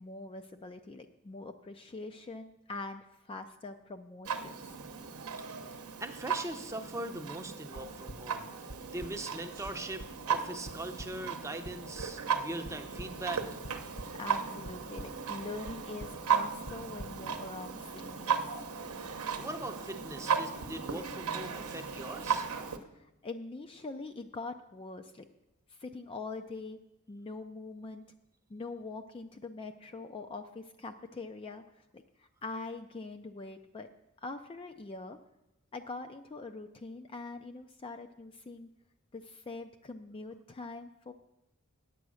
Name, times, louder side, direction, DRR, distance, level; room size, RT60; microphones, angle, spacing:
voice 1, 0.0-4.7 14.1-18.5 22.9-25.3 25.7-26.8 27.1-28.0 28.5-33.9 34.2-35.2 35.7-38.7 39.1-41.1, left 3 dB, 25° left, 7 dB, 0.4 m, -43 dB
Clock, 4.2-22.8, right 6 dB, 75° right, 0.8 m, -36 dB
voice 2, 6.0-8.5 8.9-13.4 19.4-22.5, right 1 dB, 15° right, 6 dB, 0.6 m, -41 dB
sound 1, 7.8-8.2 8.7-9.1 9.6-9.7 10.0-10.1 10.7-10.8 11.0-11.1 11.6-12.1 12.6-13.1 13.6-14.2 14.6-15.1 15.7-15.8 16.0-16.2 16.7-17.1, equal, 40° left, 1.0 m, -43 dB
8.8 x 8.4 x 6.2 m, 0.91 s
head